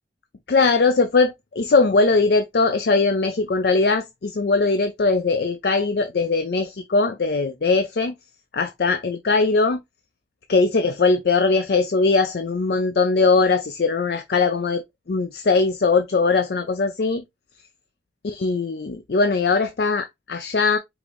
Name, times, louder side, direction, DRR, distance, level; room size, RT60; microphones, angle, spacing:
voice 1, 0.5-8.1 8.5-9.8 10.5-17.2 18.2-20.8, left 4 dB, 60° left, 0.5 m, -20 dB
4.9 x 2.5 x 3.4 m
head